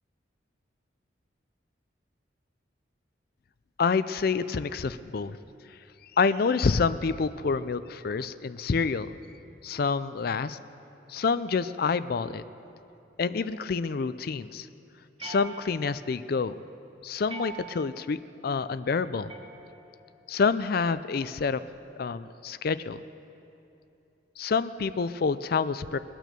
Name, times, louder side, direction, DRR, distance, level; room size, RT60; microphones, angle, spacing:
voice 1, 3.8-5.4 5.7-9.2 9.6-10.6 11.1-12.4 13.2-14.7 15.2-16.6 17.0-19.3 20.3-21.6 22.0-23.0 24.4-26.0, left 5 dB, 50° left, 14 dB, 0.4 m, -28 dB
sound 1, 15.2-16.1 17.3-18.1 19.3-20.1, right 4 dB, 25° right, 1.1 m, -43 dB
22.0 x 9.2 x 6.7 m, 2.8 s
head